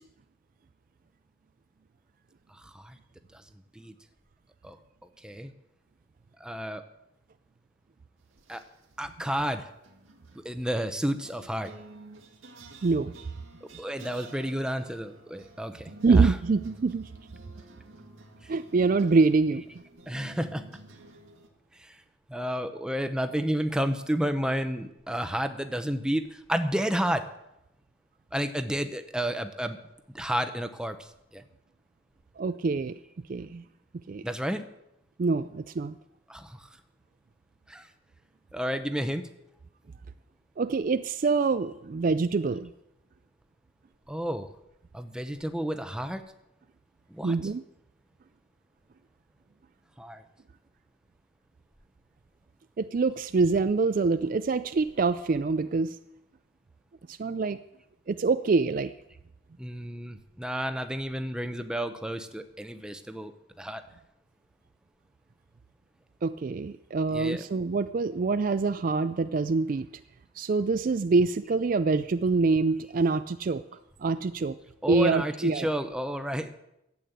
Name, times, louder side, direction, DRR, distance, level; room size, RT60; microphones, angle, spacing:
voice 1, 2.6-3.0 3.3-3.4 3.7-3.9 4.6-4.8 5.2-5.5 6.4-6.8 8.5-8.6 9.0-9.7 10.4-11.7 13.8-16.4 20.1-20.6 21.8-22.0 22.3-27.3 28.3-29.8 30.1-31.4 34.2-34.7 36.3-36.7 37.7-37.9 38.5-39.2 44.1-44.5 44.9-46.2 47.1-47.5 50.0-50.2 59.6-63.3 63.6-63.8 67.1-67.4 74.8-76.6, equal, 5° right, 8 dB, 0.8 m, -31 dB
sound 1, 8.3-8.9 9.8-21.5, right 2 dB, 85° right, 1.8 m, -51 dB
voice 2, 12.8-13.1 16.0-17.0 18.5-19.6 32.4-32.9 33.3-33.6 34.1-34.2 35.2-36.0 40.6-42.7 47.2-47.6 52.8-56.0 57.1-57.6 58.1-58.9 66.2-69.9 70.4-73.6 74.0-74.6 74.9-75.7, right 4 dB, 40° right, 12 dB, 0.4 m, -25 dB
12.5 x 8.6 x 7.9 m, 0.86 s
head